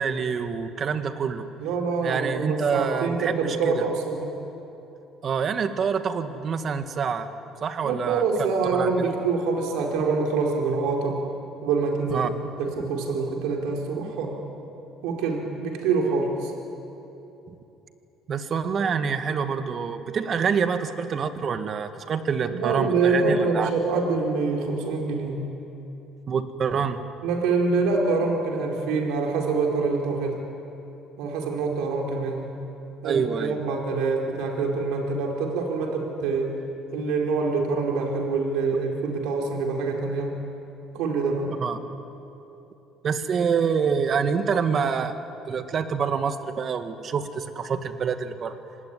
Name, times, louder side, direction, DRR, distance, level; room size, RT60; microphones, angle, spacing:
voice 1, 0.0-1.4 2.0-3.8 5.2-7.3 7.6-8.2 8.7-9.1 12.1-12.3 17.5-17.6 18.3-23.7 26.3-27.0 33.0-33.6 41.6-41.8 43.0-45.1 45.5-48.5, right 6 dB, 40° right, 8 dB, 1.8 m, -26 dB
voice 2, 1.6-4.3 7.8-11.2 11.6-12.2 12.6-14.3 15.0-16.5 22.5-25.4 27.2-30.4 31.2-32.5 33.0-36.5 36.9-40.3 40.9-41.5, right 4 dB, 85° right, 1 dB, 4.5 m, -25 dB
26.0 x 19.5 x 10.0 m, 2.9 s
cardioid pair, 120°, 0 cm